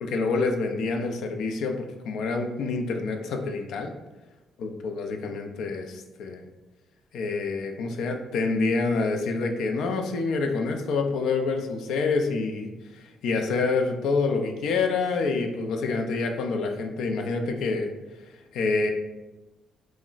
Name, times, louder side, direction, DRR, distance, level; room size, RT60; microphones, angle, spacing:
voice 1, 0.0-3.9 4.6-6.5 7.1-18.2 18.5-18.9, left 4 dB, 80° left, 4 dB, 0.3 m, -27 dB
2.3 x 2.0 x 3.8 m, 1.1 s
cardioid pair, 90°, 0 cm